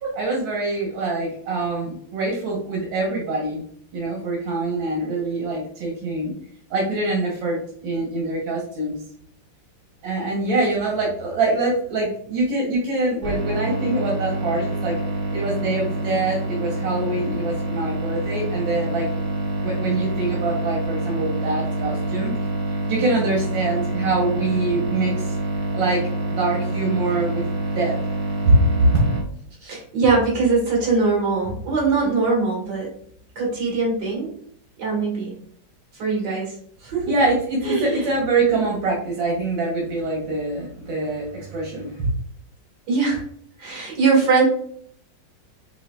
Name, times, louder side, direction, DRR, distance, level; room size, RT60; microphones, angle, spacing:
voice 1, 0.1-3.6 3.9-6.3 6.7-9.0 10.0-15.0 15.3-19.1 19.6-22.3 22.9-25.4 25.7-26.0 26.3-27.4 27.7-28.0 28.5-28.9 37.1-42.1, right 2 dB, 85° right, -2 dB, 1.7 m, -24 dB
sound 1, 13.2-29.2, right 1 dB, 20° right, 1.2 m, -26 dB
voice 2, 29.6-32.9 33.4-34.3 34.8-35.3 36.0-36.5 36.8-37.1 37.6-38.1 42.9-43.2 43.6-44.4, right 4 dB, 60° right, -3 dB, 2.2 m, -21 dB
5.4 x 2.8 x 2.2 m, 0.62 s
omnidirectional pair, 2.0 m